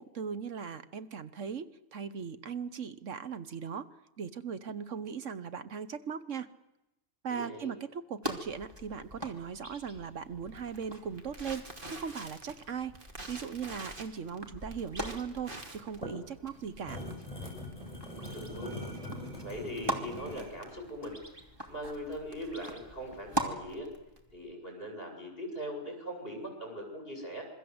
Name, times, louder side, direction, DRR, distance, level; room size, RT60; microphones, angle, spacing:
voice 1, 0.0-3.9 4.2-6.5 7.2-13.0 13.3-17.0, right 6 dB, 70° right, 13 dB, 1.4 m, -39 dB
voice 2, 7.3-7.7 18.2-18.8 19.4-21.2 21.7-23.9 24.3-27.4, equal, 45° left, 3 dB, 7.6 m, -40 dB
sound 1, 8.2-23.5, right 1 dB, 20° right, 2.8 m, -42 dB
Crackle, 10.3-24.5, right 1 dB, 40° right, 2.9 m, -49 dB
sound 2, 15.8-20.6, left 1 dB, 25° left, 7.6 m, -42 dB
26.5 x 23.5 x 7.9 m, 0.94 s
omnidirectional pair, 1.3 m